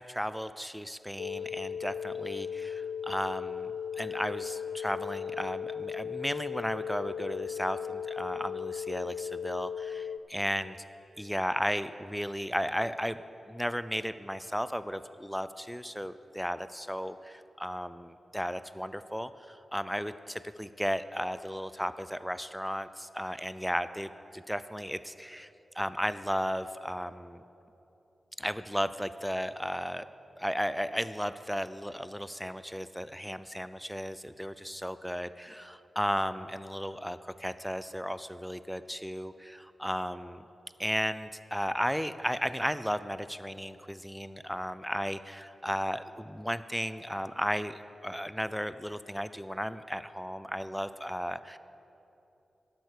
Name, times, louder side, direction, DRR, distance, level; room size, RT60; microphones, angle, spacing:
voice 1, 0.1-3.7 4.0-10.8 11.2-13.2 13.5-25.5 25.7-27.4 28.4-30.1 30.4-40.5 40.8-51.6, equal, ahead, 13 dB, 0.4 m, -34 dB
sound 1, 1.2-10.2, left 7 dB, 80° left, 0.3 m, -37 dB
11.5 x 7.8 x 6.6 m, 2.9 s
wide cardioid pair, 80°, 0 cm